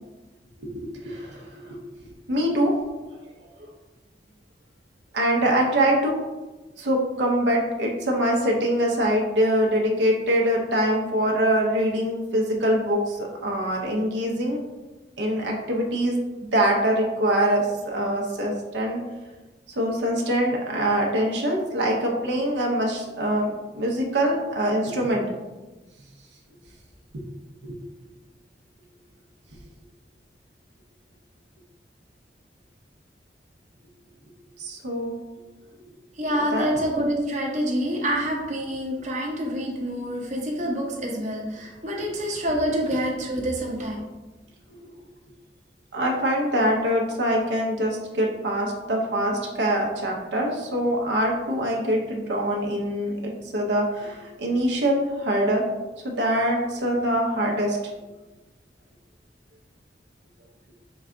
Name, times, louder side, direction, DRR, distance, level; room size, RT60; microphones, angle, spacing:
voice 1, 0.6-2.8 5.1-6.2 6.8-14.6 15.2-16.2 16.5-19.0 19.8-25.2 27.6-27.8 34.6-35.2 36.5-36.7 44.8-44.9 45.9-55.7 56.0-57.8, right 1 dB, 85° right, 0 dB, 0.7 m, -24 dB
voice 2, 36.2-44.0, equal, 40° right, -1 dB, 0.7 m, -27 dB
4.6 x 2.2 x 3.6 m, 1.1 s
head